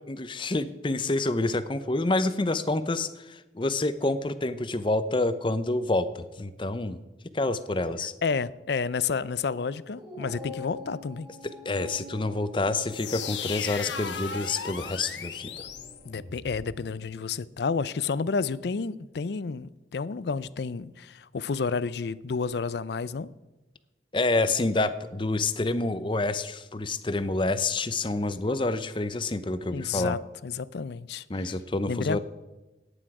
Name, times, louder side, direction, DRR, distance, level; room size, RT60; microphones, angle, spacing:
voice 1, 0.1-7.0 7.3-8.1 11.6-15.7 24.1-30.2 31.3-32.2, left 2 dB, 30° left, 0.6 m, -28 dB
voice 2, 8.2-11.3 16.1-23.3 29.7-31.6 31.9-32.2, left 5 dB, 65° left, 0.5 m, -30 dB
Dog, 9.8-16.4, left 3 dB, 15° right, 4.7 m, -46 dB
sound 1, 12.9-16.7, left 6 dB, 80° left, 1.1 m, -36 dB
15.0 x 10.0 x 4.8 m
head